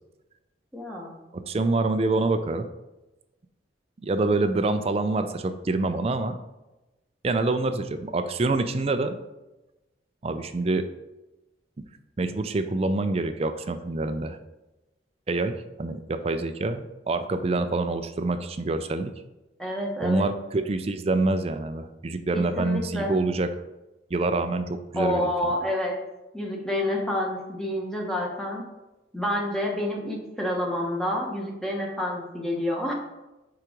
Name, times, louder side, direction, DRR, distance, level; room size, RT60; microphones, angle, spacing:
voice 1, 0.7-1.2 19.6-20.3 22.3-23.1 24.9-26.0 26.3-28.6 29.1-32.9, left 1 dB, 5° left, -2 dB, 1.0 m, -28 dB
voice 2, 1.3-2.7 4.0-6.4 7.2-9.2 10.2-10.8 12.2-14.4 15.3-19.1 20.0-23.5 24.1-25.5, right 2 dB, 30° right, 9 dB, 0.4 m, -26 dB
4.7 x 4.5 x 5.0 m, 1.0 s
head